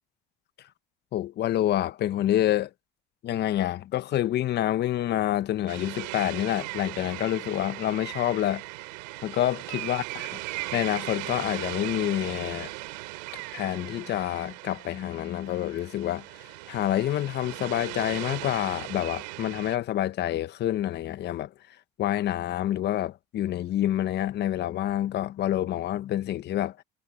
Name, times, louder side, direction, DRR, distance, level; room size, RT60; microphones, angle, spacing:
voice 1, 1.1-2.7 3.2-8.6 9.2-10.3 10.7-12.7 13.5-21.5 22.0-26.8, left 12 dB, 55° left, 1.2 m, -27 dB
sound 1, 5.7-19.8, right 23 dB, 85° right, 3.4 m, -38 dB
supercardioid pair, 80°, 21 cm